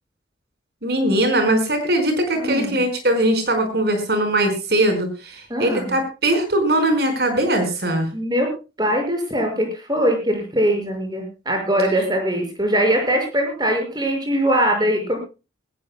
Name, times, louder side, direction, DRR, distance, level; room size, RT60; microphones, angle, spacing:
voice 1, 0.8-8.1, right 1 dB, 60° right, 7 dB, 4.8 m, -20 dB
voice 2, 2.3-2.8 5.5-6.0 8.1-8.5 8.8-15.2, equal, 20° right, 3 dB, 5.8 m, -21 dB
21.0 x 18.0 x 2.2 m, 0.31 s
head